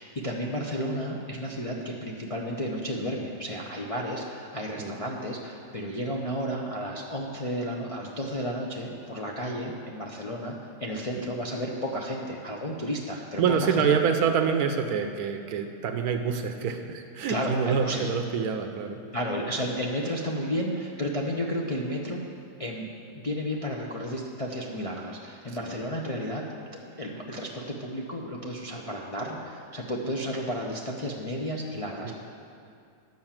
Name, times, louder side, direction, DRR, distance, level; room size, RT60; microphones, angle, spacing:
voice 1, 0.0-13.9 17.3-18.1 19.1-22.2 22.6-26.4 26.8-32.1, equal, 35° left, -2 dB, 0.5 m, -32 dB
voice 2, 13.4-19.0 32.0-32.1, right 6 dB, 75° right, 6 dB, 1.2 m, -26 dB
10.5 x 5.7 x 7.3 m, 2.5 s
omnidirectional pair, 1.7 m